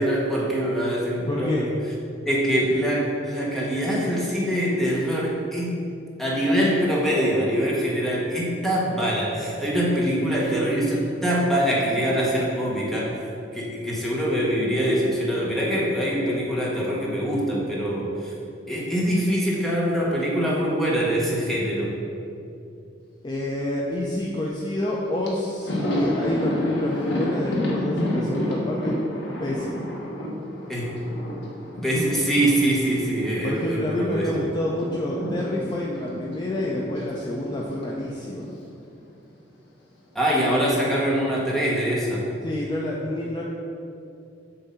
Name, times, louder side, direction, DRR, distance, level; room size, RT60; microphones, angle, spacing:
voice 1, 0.0-1.7 2.3-5.8 6.2-13.1 13.5-18.3 18.7-21.9 30.7-30.9 31.8-34.3 40.1-42.2, equal, ahead, -5 dB, 1.1 m, -24 dB
voice 2, 1.3-1.7 23.2-28.9 29.4-29.9 33.4-38.5 42.4-43.4, left 1 dB, 25° left, -3 dB, 0.4 m, -28 dB
Thunder, 24.9-25.0 25.2-34.1 34.3-38.6 38.9-39.1 40.2-40.9, equal, 70° left, 1.2 m, -31 dB
7.2 x 2.7 x 5.5 m, 2.6 s
head